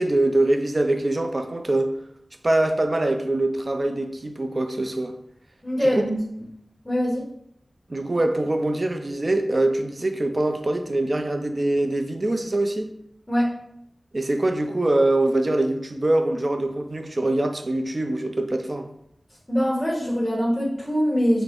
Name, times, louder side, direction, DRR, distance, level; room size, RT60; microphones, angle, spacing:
voice 1, 0.0-2.0 2.4-5.1 6.0-6.1 7.9-12.9 14.1-18.9, right 1 dB, 45° right, 0.5 m, -23 dB
voice 2, 5.6-6.2 6.8-7.3 13.3-13.5 19.5-21.4, equal, 5° left, 1.4 m, -23 dB
6.0 x 2.1 x 3.7 m
wide cardioid pair, 50°, 0 cm